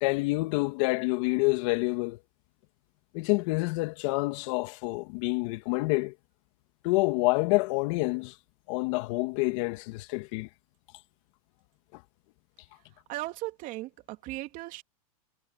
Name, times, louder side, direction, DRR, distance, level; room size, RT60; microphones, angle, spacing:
voice 1, 0.0-2.2 3.1-6.1 6.8-8.4 8.7-10.5 11.9-12.0, left 25 dB, 55° left, 1.9 m, -27 dB
voice 2, 13.1-14.8, right 18 dB, 45° right, 3.0 m, -37 dB
hypercardioid pair, 115°, 19 cm